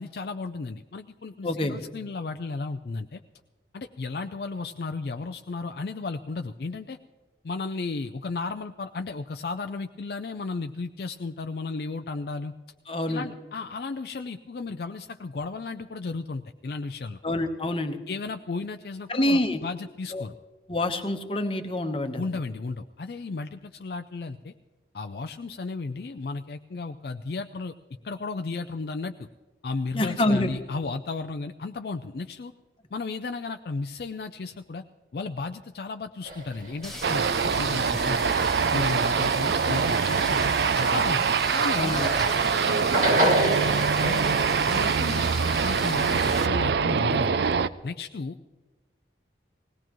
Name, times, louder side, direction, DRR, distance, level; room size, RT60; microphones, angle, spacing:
voice 1, 0.0-3.2 3.7-7.0 7.4-12.5 13.1-17.2 18.1-20.3 22.1-24.5 24.9-27.7 28.0-29.3 29.6-32.5 32.9-34.8 35.1-38.4 38.7-42.0 42.6-47.4 47.8-48.5, left 3 dB, 55° left, 7 dB, 0.4 m, -34 dB
voice 2, 1.4-1.8 12.9-13.2 17.2-18.0 19.1-19.6 20.1-20.3 20.7-22.2 29.9-30.5 41.7-42.1, left 1 dB, 30° left, 7 dB, 1.0 m, -26 dB
sound 1, 36.3-42.4 42.7-44.4, right 1 dB, 45° right, 2.0 m, -30 dB
sound 2, 36.8-46.5, left 1 dB, ahead, 1.0 m, -37 dB
sound 3, 37.0-47.7, right 6 dB, 65° right, 0.4 m, -24 dB
19.5 x 17.5 x 3.0 m, 1.3 s
head